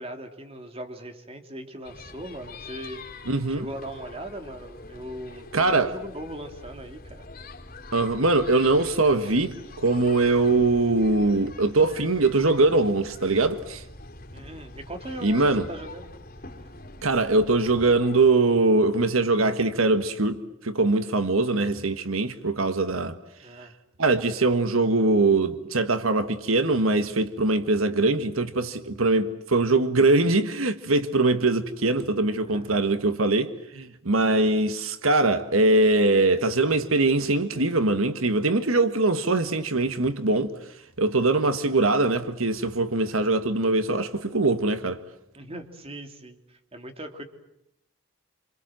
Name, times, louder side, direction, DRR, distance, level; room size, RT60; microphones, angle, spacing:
voice 1, 0.0-3.0 3.5-7.3 14.3-16.1 23.4-23.7 32.5-32.7 34.3-34.4 45.3-47.2, right 1 dB, 30° right, 3.0 m, -39 dB
sound 1, 1.8-18.2, left 2 dB, 45° left, 4.3 m, -44 dB
voice 2, 3.3-3.7 5.5-5.9 7.9-13.8 15.2-15.6 17.0-20.4 20.6-23.2 24.0-40.5 41.0-45.0, right 2 dB, 85° right, 1.6 m, -22 dB
27.5 x 27.5 x 7.7 m
head